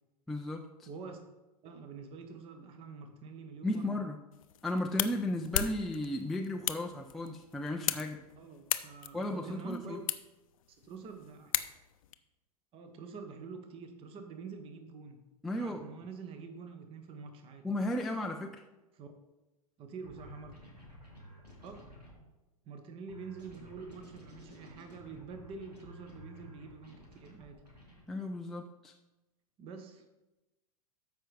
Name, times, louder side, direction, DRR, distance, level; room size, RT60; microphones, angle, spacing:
voice 1, 0.3-0.9 3.6-4.2 4.6-8.2 9.1-10.0 15.4-15.9 17.6-18.6 28.1-28.9, left 1 dB, ahead, 2 dB, 0.3 m, -35 dB
voice 2, 0.9-1.2 1.6-4.1 8.4-10.0 10.8-11.5 12.7-15.2 15.6-17.7 18.9-19.1 19.8-20.5 21.6-21.9 22.7-27.6 29.6-30.0, right 5 dB, 25° right, 7 dB, 0.9 m, -46 dB
sound 1, 4.3-12.1, left 11 dB, 60° left, 0.5 m, -38 dB
sound 2, 20.0-22.2 23.1-28.0, equal, 85° right, 2.3 m, -53 dB
13.0 x 5.0 x 3.3 m, 1.0 s
figure-of-eight pair, 100°, 20 cm